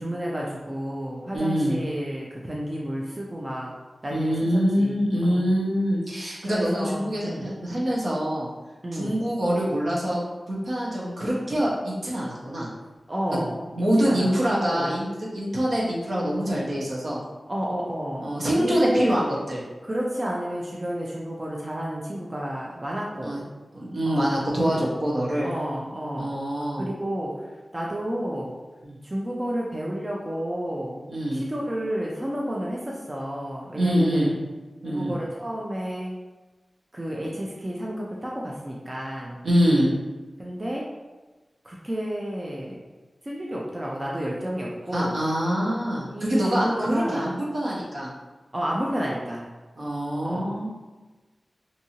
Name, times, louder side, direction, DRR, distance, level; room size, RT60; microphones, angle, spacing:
voice 1, 0.0-3.7 4.0-5.5 6.4-7.5 8.8-9.2 13.1-13.5 14.0-14.9 17.5-18.3 18.6-19.1 19.8-23.4 24.1-24.3 25.4-26.3 26.8-27.5 27.7-28.5 29.0-31.0 31.3-34.3 34.8-36.1 36.9-39.4 40.4-40.9 41.6-42.8 43.2-45.1 46.1-47.3 48.5-49.5 50.2-50.6, equal, 30° right, -3 dB, 0.4 m, -30 dB
voice 2, 1.3-1.8 4.1-8.5 8.9-10.2 10.5-12.7 13.3-13.4 13.7-17.2 18.2-19.6 23.2-23.4 23.7-25.5 26.2-26.9 28.8-29.0 31.1-31.4 33.7-34.3 34.8-35.1 39.4-39.9 44.9-48.1 49.8-50.7, equal, 65° right, -6 dB, 0.9 m, -25 dB
2.7 x 2.6 x 2.8 m, 1.2 s
wide cardioid pair, 60°, 0 cm